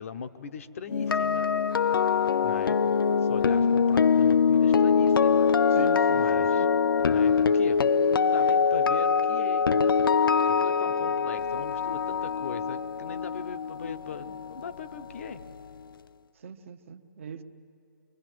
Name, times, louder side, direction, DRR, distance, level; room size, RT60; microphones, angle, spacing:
voice 1, 0.0-1.5 2.4-2.8 3.3-5.5 6.1-6.7 7.0-9.7 10.5-15.4, left 6 dB, 40° left, 10 dB, 1.0 m, -40 dB
sound 1, 0.9-15.0 15.2-15.5, left 6 dB, 90° left, 0.5 m, -23 dB
voice 2, 5.7-6.7 16.4-17.4, right 7 dB, 35° right, 8 dB, 1.0 m, -40 dB
25.0 x 23.0 x 7.7 m, 2.7 s
hypercardioid pair, 170°, 11 cm